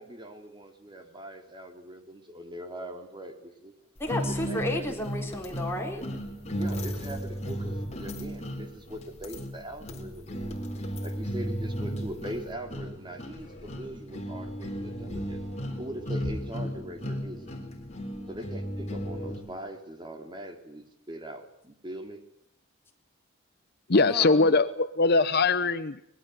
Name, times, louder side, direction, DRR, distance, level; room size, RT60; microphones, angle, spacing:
voice 1, 0.0-3.7 4.3-4.9 6.5-17.5 18.3-22.2, right 1 dB, 20° right, 5 dB, 3.2 m, -42 dB
voice 2, 4.0-6.0 23.9-24.6, left 1 dB, 10° left, 1 dB, 4.1 m, -32 dB
sound 1, 4.1-19.5, equal, 35° left, 3.8 m, -35 dB
voice 3, 23.9-26.1, left 3 dB, 50° left, 13 dB, 0.9 m, -22 dB
24.5 x 20.5 x 8.0 m, 0.78 s
head